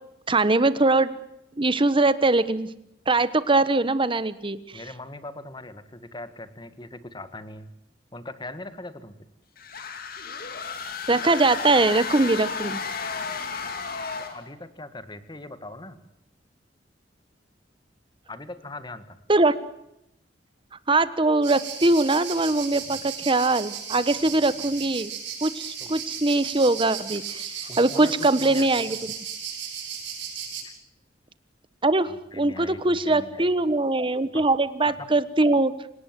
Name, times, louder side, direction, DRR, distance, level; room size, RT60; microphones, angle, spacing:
voice 1, 0.3-1.1 1.6-2.7 3.1-4.6 11.1-12.8 19.3-19.5 20.9-25.1 25.4-27.4 27.8-29.0 31.8-35.7, right 2 dB, 30° right, 14 dB, 1.3 m, -22 dB
voice 2, 4.7-7.7 8.1-9.2 13.9-14.0 14.3-16.0 18.3-19.2 25.8-25.9 27.7-28.8 30.6-30.7 32.1-33.5 34.3-34.4 34.9-35.1, left 2 dB, 25° left, 11 dB, 1.8 m, -40 dB
sound 1, 9.6-14.5, left 5 dB, 55° left, 2.9 m, -33 dB
sound 2, 21.4-30.6, right 7 dB, 75° right, 7.8 m, -35 dB
27.5 x 18.0 x 7.7 m, 0.82 s
head